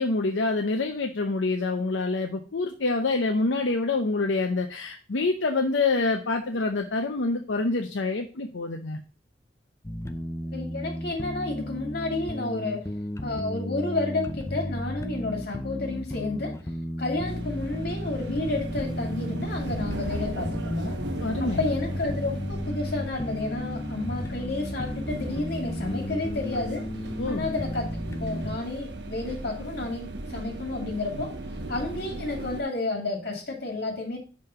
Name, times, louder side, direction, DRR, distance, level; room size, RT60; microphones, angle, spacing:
voice 1, 0.0-9.0 21.2-21.6 27.2-27.5, left 3 dB, 85° left, 0.7 m, -26 dB
sound 1, 9.8-28.6, left 1 dB, 15° left, 0.5 m, -34 dB
voice 2, 10.5-13.0 13.2-16.7 17.0-21.0 21.4-26.9 27.3-31.4 31.7-34.2, left 2 dB, 55° left, 2.4 m, -31 dB
Train Ride, 17.3-32.6, right 2 dB, 65° right, 0.9 m, -37 dB
5.5 x 5.2 x 5.7 m
head